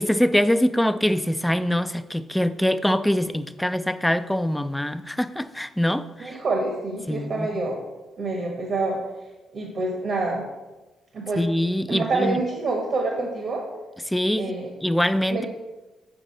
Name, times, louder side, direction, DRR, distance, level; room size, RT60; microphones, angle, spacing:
voice 1, 0.0-6.4 7.1-7.5 11.4-12.4 14.1-14.6 14.8-15.5, equal, 5° left, 12 dB, 0.4 m, -23 dB
voice 2, 6.2-7.8 8.2-9.0 9.5-10.4 11.1-11.4 11.9-13.6 14.4-14.7 15.3-15.5, right 3 dB, 55° right, 1 dB, 1.1 m, -27 dB
6.8 x 4.9 x 4.2 m, 1.1 s
cardioid pair, 90°, 0 cm